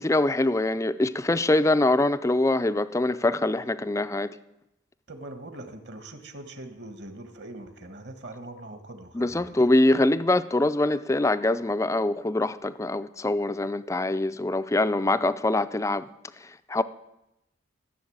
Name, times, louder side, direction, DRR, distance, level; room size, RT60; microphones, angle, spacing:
voice 1, 0.0-4.3 9.1-16.1 16.7-16.8, left 2 dB, 15° left, 0.4 m, -24 dB
voice 2, 5.1-9.5, right 1 dB, 55° right, 1.5 m, -42 dB
14.5 x 7.1 x 8.6 m
head